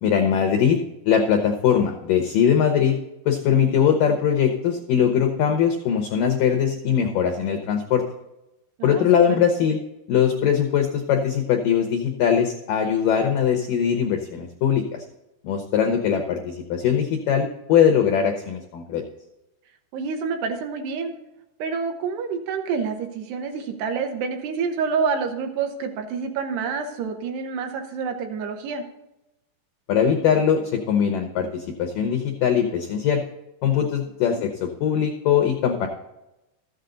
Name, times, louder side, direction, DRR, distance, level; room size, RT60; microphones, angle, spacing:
voice 1, 0.0-0.8 1.0-3.0 3.3-8.0 8.8-9.8 10.1-15.0 15.4-19.0 29.9-33.2 33.6-35.9, left 8 dB, 85° left, 4 dB, 1.9 m, -21 dB
voice 2, 8.8-9.4 19.9-21.1 21.6-28.9 34.3-34.4, right 5 dB, 75° right, 5 dB, 2.7 m, -28 dB
13.5 x 8.2 x 3.8 m, 0.93 s
omnidirectional pair, 5.1 m